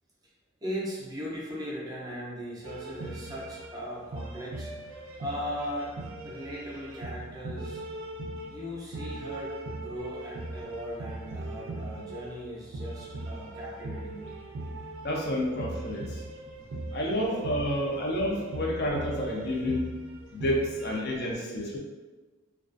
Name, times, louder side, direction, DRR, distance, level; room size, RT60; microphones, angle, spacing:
voice 1, 0.6-5.9 6.2-7.8 8.5-14.3 16.5-16.7, equal, 20° right, -5 dB, 0.4 m, -38 dB
sound 1, 2.6-21.0, right 2 dB, 85° right, 0.4 m, -40 dB
voice 2, 15.0-16.2 16.9-19.8 20.3-21.8, equal, 55° left, -2 dB, 0.4 m, -29 dB
2.3 x 2.2 x 2.4 m, 1.3 s
head